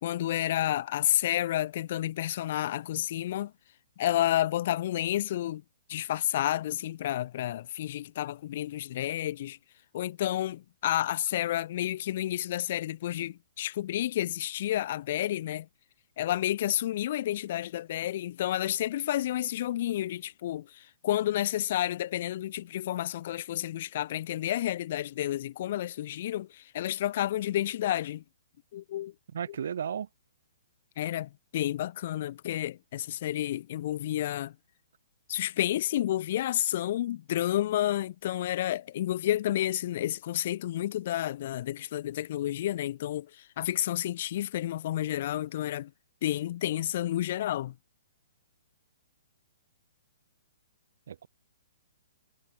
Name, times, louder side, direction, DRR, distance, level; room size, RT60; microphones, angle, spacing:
voice 1, 0.0-3.5 4.0-5.6 5.9-9.6 9.9-15.7 16.2-28.2 28.7-29.1 31.0-34.5 35.3-43.3 43.6-45.9 46.2-47.7, left 13 dB, 40° left, 0.8 m, -30 dB
voice 2, 29.3-30.1 51.1-51.3, right 8 dB, 60° right, 1.4 m, -34 dB
hypercardioid pair, 170°, 0 cm